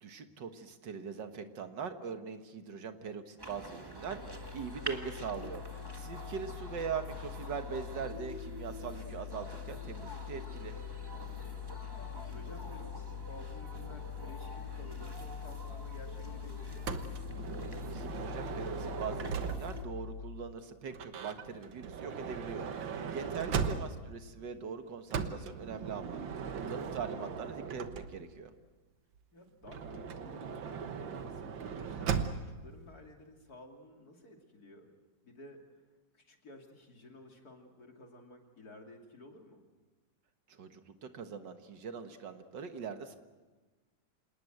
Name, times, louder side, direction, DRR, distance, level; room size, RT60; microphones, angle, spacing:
voice 1, 0.0-10.7 17.9-26.2 26.6-28.5 40.5-43.2, right 6 dB, 70° right, 8 dB, 2.0 m, -42 dB
sound 1, 3.4-19.8, right 1 dB, 15° right, 1.5 m, -47 dB
sound 2, 3.9-20.5, left 9 dB, 40° right, 6.7 m, -44 dB
voice 2, 5.9-6.6 11.1-17.0 23.0-23.6 29.3-34.9 35.2-35.8 36.1-39.6, left 1 dB, 55° left, 2 dB, 3.2 m, -54 dB
Motor vehicle (road) / Sliding door, 16.9-19.9 20.9-24.2 25.1-28.4 29.6-32.6, right 6 dB, 90° right, 2.0 m, -38 dB
27.0 x 19.5 x 7.9 m, 1.3 s
omnidirectional pair, 2.0 m